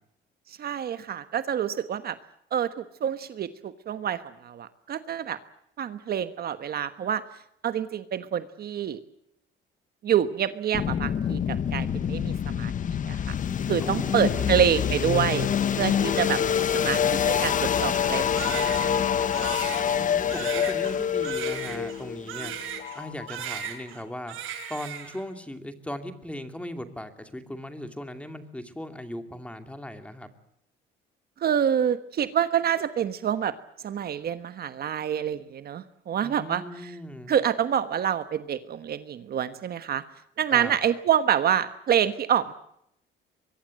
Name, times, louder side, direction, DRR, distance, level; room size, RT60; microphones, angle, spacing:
voice 1, 0.5-2.2 2.5-5.4 5.8-7.2 7.6-9.0 10.0-13.3 13.7-15.5 15.8-19.5 31.4-33.5 33.8-36.9 37.3-40.0 40.4-42.5, right 9 dB, 50° right, 11 dB, 1.3 m, -27 dB
sound 1, 10.7-23.6, left 8 dB, 40° left, 1.0 m, -26 dB
voice 2, 13.8-14.7 19.9-22.5 22.9-24.4 24.7-30.3 36.2-37.3 40.5-40.8, left 1 dB, 5° left, 7 dB, 2.6 m, -38 dB
Crying sobbing, 18.3-23.0 23.3-24.0 24.3-25.2, right 9 dB, 90° right, 6.9 m, -37 dB
24.5 x 23.0 x 7.7 m, 0.75 s
cardioid pair, 140°, 20 cm